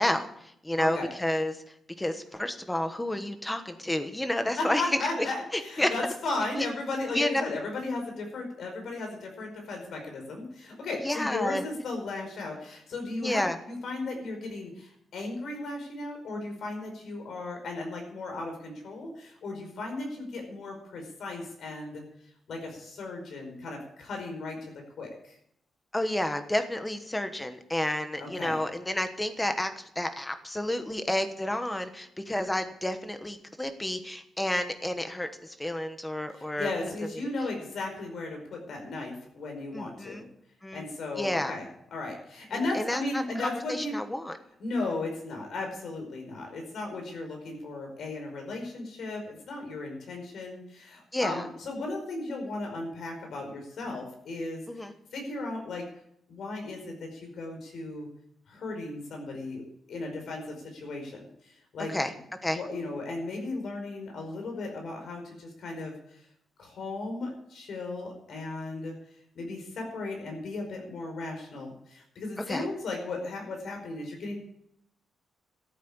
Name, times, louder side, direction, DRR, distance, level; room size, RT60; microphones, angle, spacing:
voice 1, 0.0-4.9 5.5-5.9 6.6-6.7 7.1-7.4 11.0-11.6 13.2-13.6 25.9-36.7 39.7-40.3 40.6-40.9 41.2-41.5 42.5-44.4 51.1-51.4 54.7-54.9 61.9-62.1 62.4-62.6 72.5-72.7, left 1 dB, 10° left, 8 dB, 1.2 m, -30 dB
voice 2, 0.8-1.1 4.5-22.0 22.5-25.4 28.2-28.6 36.3-40.2 40.7-43.9 44.6-55.8 56.3-58.1 58.5-59.6 59.9-61.9 62.5-66.2 66.6-68.9 69.3-74.4, left 2 dB, 60° left, 2 dB, 5.0 m, -36 dB
13.5 x 8.5 x 8.7 m, 0.72 s
wide cardioid pair, 175°, 0 cm